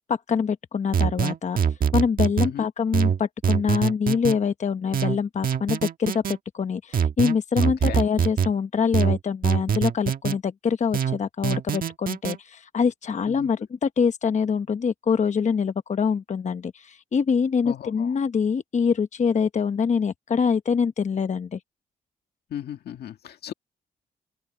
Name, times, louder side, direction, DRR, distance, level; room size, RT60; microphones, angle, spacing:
voice 1, 0.0-1.6 1.9-21.6, left 6 dB, 45° left, 1.0 m, -25 dB
sound 1, 0.9-2.5 2.9-4.4 4.9-6.4 6.9-8.5 8.9-10.4 10.9-12.4, right 7 dB, 60° right, 1.4 m, -23 dB
voice 2, 17.6-18.1 22.5-23.5, left 10 dB, 80° left, 1.9 m, -35 dB
open air
cardioid pair, 75°, 16 cm